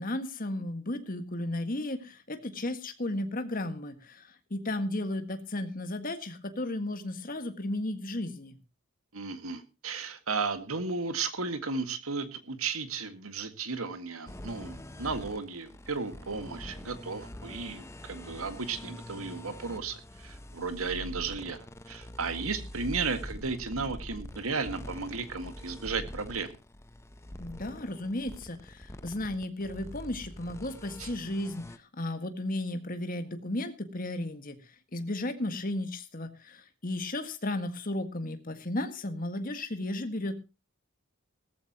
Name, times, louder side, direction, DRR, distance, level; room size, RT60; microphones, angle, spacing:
voice 1, 0.0-8.6 27.4-31.7 31.9-34.6 34.9-40.4, left 1 dB, 40° left, 8 dB, 1.7 m, -34 dB
voice 2, 9.1-21.6 21.9-26.5 31.0-31.1, right 4 dB, 80° right, 10 dB, 1.9 m, -34 dB
sound 1, 14.3-31.8, left 1 dB, 15° left, 0.7 m, -44 dB
17.5 x 14.0 x 2.9 m, 0.28 s
head